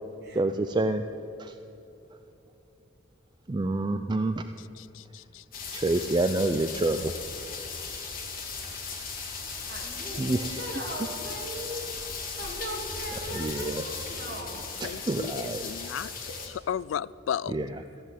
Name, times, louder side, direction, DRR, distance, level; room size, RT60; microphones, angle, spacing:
voice 1, 0.3-1.1 1.4-1.6 3.5-4.4 5.7-7.2 9.5-9.7 10.2-10.7 13.2-13.9 14.8-15.7 17.5-17.8, right 2 dB, 25° right, 0.4 m, -28 dB
voice 2, 4.8-5.6 14.8-16.3 16.7-17.5, left 8 dB, 75° left, 0.3 m, -34 dB
sound 1, 5.5-16.5, left 5 dB, 45° left, 2.4 m, -37 dB
voice 3, 9.7-12.1 12.4-15.0 16.0-16.4, equal, 55° right, 2.9 m, -39 dB
15.0 x 8.3 x 9.0 m
head